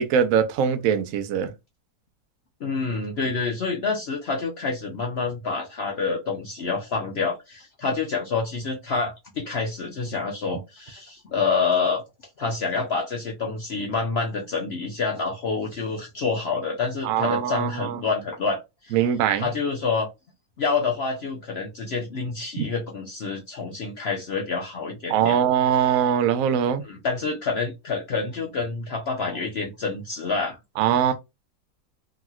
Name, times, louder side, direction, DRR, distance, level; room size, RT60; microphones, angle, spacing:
voice 1, 0.0-1.5 17.0-18.0 18.9-19.5 22.6-22.7 25.1-26.8 30.8-31.1, right 8 dB, 65° right, 0.9 m, -22 dB
voice 2, 2.6-12.0 12.4-19.0 19.4-20.1 20.6-25.4 26.9-30.6, left 4 dB, 60° left, 0.7 m, -27 dB
3.0 x 2.8 x 2.3 m
omnidirectional pair, 1.7 m